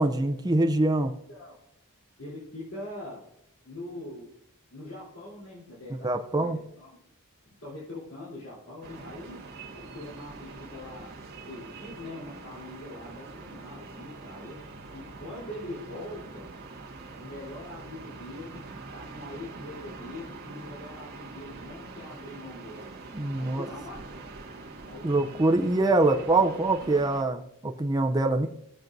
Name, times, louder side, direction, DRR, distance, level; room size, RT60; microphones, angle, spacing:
voice 1, 0.0-1.1 6.0-6.6 23.1-23.7 25.0-28.5, right 2 dB, 20° right, 4 dB, 0.5 m, -24 dB
voice 2, 2.2-3.3 3.6-4.3 4.7-7.0 7.6-9.4 9.8-11.1 11.5-14.6 14.9-16.5 17.2-22.9 23.4-24.2 24.8-25.2 26.0-26.2, left 1 dB, 65° left, -8 dB, 3.7 m, -42 dB
sound 1, 8.8-27.2, right 3 dB, 45° right, 1.7 m, -44 dB
16.0 x 7.4 x 2.6 m, 0.74 s
head